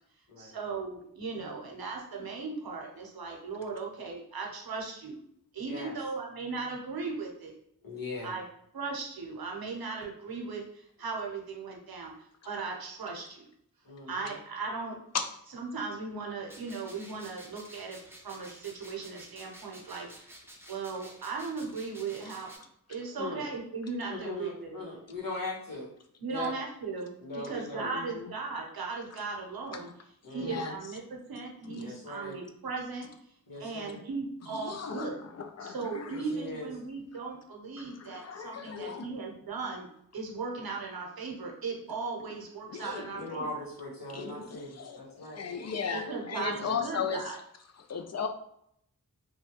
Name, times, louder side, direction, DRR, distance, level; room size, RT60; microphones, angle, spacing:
voice 1, 0.4-5.2 5.5-7.6 8.2-8.4 8.7-13.5 14.1-15.0 15.5-18.0 18.2-20.4 20.7-22.5 22.9-24.8 26.2-29.9 30.3-33.1 33.6-35.2 35.6-39.9 40.1-43.5 45.9-47.3, right 4 dB, 90° right, 0 dB, 0.7 m, -37 dB
voice 2, 7.8-8.3 13.8-14.3 23.2-23.4 24.1-25.9 26.3-26.5 27.2-27.9 30.2-30.7 31.8-32.3 33.5-34.0 36.1-36.7 43.1-45.5 46.4-46.8, left 2 dB, 70° left, -6 dB, 1.3 m, -40 dB
sound 1, 16.5-22.6, right 1 dB, 5° right, 0.6 m, -51 dB
voice 3, 27.8-28.3 30.4-30.7 31.7-31.9 34.5-36.4 37.8-39.1 42.7-43.3 44.1-47.3 47.9-48.3, left 6 dB, 50° left, 6 dB, 0.4 m, -37 dB
3.0 x 2.2 x 2.9 m, 0.71 s
cardioid pair, 40°, 35 cm